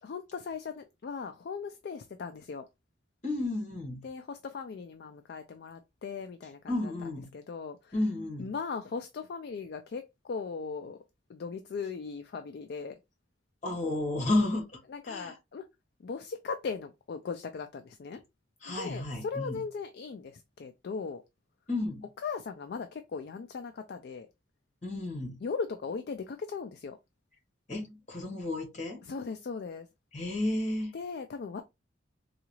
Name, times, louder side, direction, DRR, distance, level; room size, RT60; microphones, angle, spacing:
voice 1, 0.0-2.6 4.0-6.6 7.3-7.9 8.4-11.0 11.3-12.9 14.9-15.7 16.0-18.2 18.7-21.2 22.2-24.3 25.4-27.0 29.0-29.9 30.9-31.6, left 5 dB, 55° left, 0.3 m, -38 dB
voice 2, 3.2-4.0 6.7-7.3 7.9-8.5 13.6-14.8 15.0-15.4 18.6-19.6 21.7-22.1 24.8-25.4 27.7-29.0 30.1-30.9, left 2 dB, 40° left, 1.5 m, -32 dB
3.8 x 2.4 x 3.0 m
head